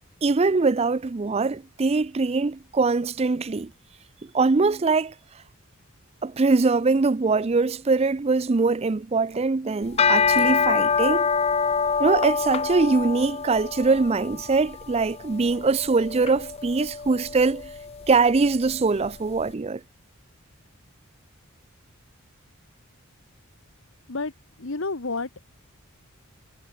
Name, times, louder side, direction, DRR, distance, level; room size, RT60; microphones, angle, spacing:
voice 1, 0.2-3.7 4.3-5.1 6.2-11.3 12.0-17.7 18.1-19.8, right 4 dB, 30° right, 0.4 m, -22 dB
sound 1, 9.8-19.2, left 6 dB, 30° left, 0.5 m, -26 dB
voice 2, 24.6-25.4, left 3 dB, 60° left, 1.3 m, -30 dB
head